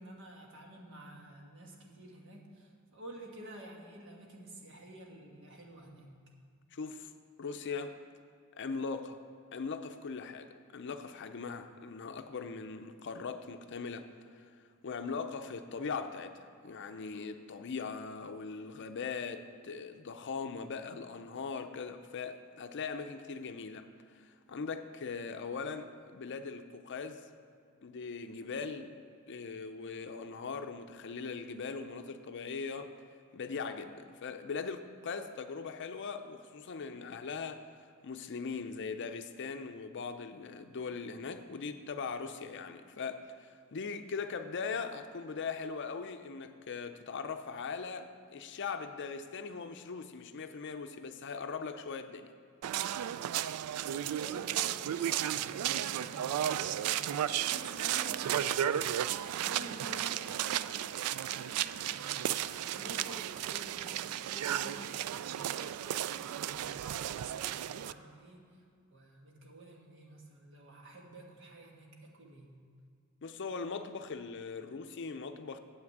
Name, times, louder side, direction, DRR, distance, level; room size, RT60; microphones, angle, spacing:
voice 1, 0.0-6.1 54.0-60.8 61.2-68.6 68.9-72.6, right 1 dB, 60° right, 1.5 m, -51 dB
voice 2, 6.7-7.1 7.4-8.0 8.6-9.2 9.5-14.6 14.8-27.3 27.8-28.9 29.3-32.9 33.3-52.3 73.2-75.6, left 5 dB, 55° left, 0.5 m, -40 dB
sound 1, 52.6-67.9, right 11 dB, 90° right, 0.3 m, -34 dB
8.0 x 6.0 x 7.8 m
head